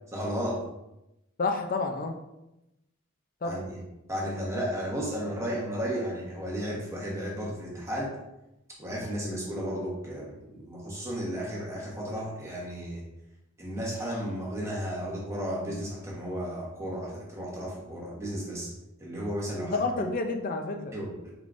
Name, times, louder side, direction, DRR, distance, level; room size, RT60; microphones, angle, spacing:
voice 1, 0.1-0.6 3.4-3.8 4.1-8.2 8.8-13.0 13.6-18.7 19.0-20.1 20.9-21.3, equal, 15° right, -4 dB, 1.2 m, -34 dB
voice 2, 1.4-2.1 3.4-3.6 19.6-20.9, left 3 dB, 45° left, 4 dB, 0.5 m, -29 dB
4.9 x 3.6 x 2.6 m, 0.90 s
head